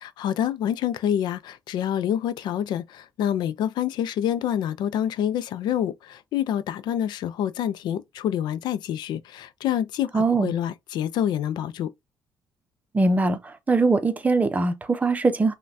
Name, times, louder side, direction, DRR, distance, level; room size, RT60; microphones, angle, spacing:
voice 1, 0.0-11.9, left 10 dB, 80° left, 0.4 m, -27 dB
voice 2, 10.1-10.5 12.9-13.4 13.7-15.5, right 3 dB, 20° right, 0.6 m, -21 dB
5.5 x 2.2 x 2.6 m
cardioid pair, 130°, 7 cm